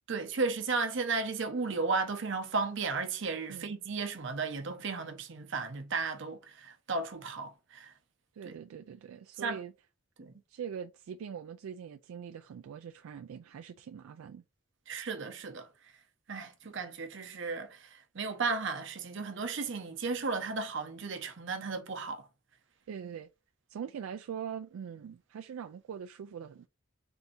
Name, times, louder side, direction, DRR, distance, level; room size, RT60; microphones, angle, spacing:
voice 1, 0.1-7.9 8.5-8.6 9.4-9.6 10.2-10.3 14.9-15.7 16.3-17.9 18.1-22.3, right 4 dB, 60° right, 0.7 m, -34 dB
voice 2, 8.3-9.7 10.5-14.4 22.9-23.3 23.7-26.7, right 8 dB, 85° right, 0.3 m, -42 dB
3.5 x 2.6 x 4.2 m
head